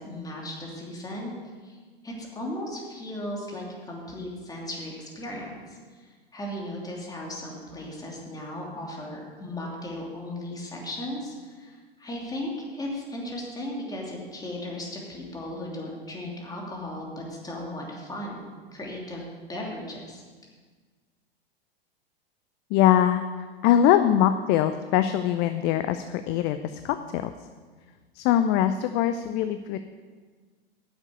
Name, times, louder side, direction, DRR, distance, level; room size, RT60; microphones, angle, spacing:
voice 1, 0.0-1.3 1.6-1.8 2.0-18.4 18.7-20.2, left 1 dB, 10° left, -2 dB, 2.9 m, -36 dB
voice 2, 22.7-27.3 28.1-29.8, left 11 dB, 35° left, 10 dB, 0.5 m, -23 dB
10.0 x 7.3 x 7.9 m, 1.5 s
figure-of-eight pair, 95°, 30 cm